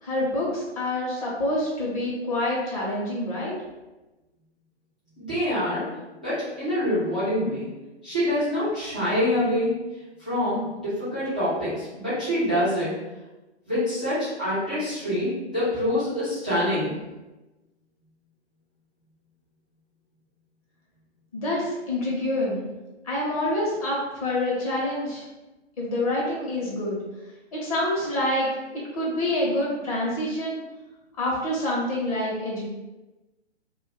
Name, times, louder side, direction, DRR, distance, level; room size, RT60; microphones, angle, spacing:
voice 1, 0.0-3.5 21.3-22.6 23.0-25.3 25.8-27.0 27.5-30.6 31.2-32.7, left 1 dB, 30° left, -5 dB, 0.8 m, -27 dB
voice 2, 5.2-5.9 6.2-7.7 8.0-9.7 10.2-12.9 13.7-16.9, left 1 dB, 10° right, -14 dB, 0.3 m, -25 dB
2.4 x 2.3 x 3.5 m, 1.1 s
figure-of-eight pair, 125°, 34 cm